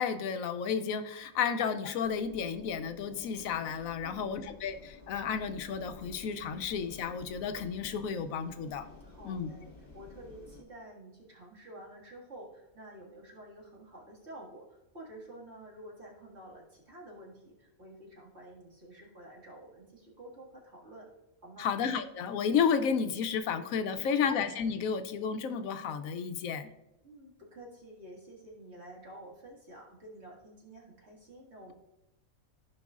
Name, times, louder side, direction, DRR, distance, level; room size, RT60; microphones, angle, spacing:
voice 1, 0.0-8.9 9.2-9.5 21.6-26.7, left 6 dB, 75° left, 9 dB, 1.0 m, -32 dB
sound 1, 2.0-10.6, left 2 dB, 40° left, 1.4 m, -53 dB
voice 2, 4.0-4.4 9.0-21.1 21.4-21.7 23.9-24.3 27.0-31.7, right 1 dB, 50° right, -3 dB, 2.2 m, -50 dB
15.0 x 5.3 x 2.4 m, 0.92 s
omnidirectional pair, 1.5 m